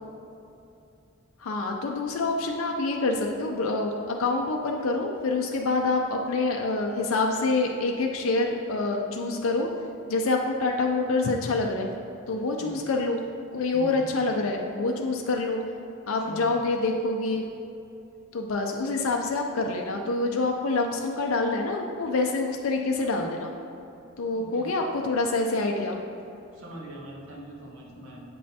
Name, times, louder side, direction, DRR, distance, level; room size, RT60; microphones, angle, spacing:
voice 1, 1.4-9.7 10.1-11.9 12.3-13.2 13.5-15.6 16.1-17.5 18.3-23.5 24.2-26.0, left 3 dB, 65° left, 1 dB, 0.5 m, -26 dB
voice 2, 13.7-14.3 16.2-16.6 24.3-24.7 26.5-28.2, right 1 dB, 85° right, -2 dB, 1.2 m, -43 dB
7.7 x 5.3 x 2.8 m, 2.8 s
head